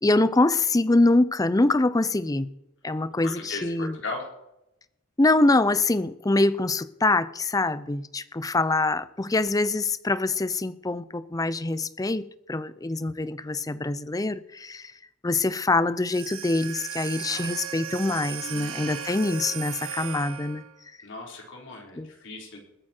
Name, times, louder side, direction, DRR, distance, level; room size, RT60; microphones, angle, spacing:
voice 1, 0.0-2.5 2.8-3.9 5.2-14.9 15.2-20.6 22.0-22.1, left 2 dB, 15° left, 16 dB, 0.5 m, -24 dB
voice 2, 3.2-4.3 17.3-18.8 21.0-22.6, left 2 dB, 55° left, 0 dB, 4.0 m, -39 dB
sound 1, 16.0-20.8, right 9 dB, 70° right, 1.5 m, -36 dB
21.0 x 9.4 x 4.4 m, 0.86 s
head